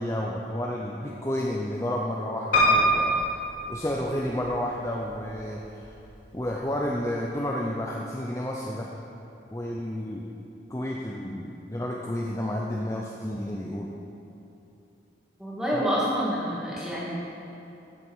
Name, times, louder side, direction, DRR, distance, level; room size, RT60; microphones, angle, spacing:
voice 1, 0.0-3.2 3.7-5.9 6.3-8.9 9.5-10.3 10.7-13.9 15.7-15.8 16.8-16.9, left 1 dB, 15° left, -2 dB, 0.7 m, -31 dB
Piano, 2.5-4.5 5.1-5.8 6.2-6.3 6.5-6.6, equal, 50° left, 2.9 m, -24 dB
voice 2, 15.4-17.1, equal, 5° right, -7 dB, 2.4 m, -27 dB
14.0 x 7.9 x 5.6 m, 2.9 s
head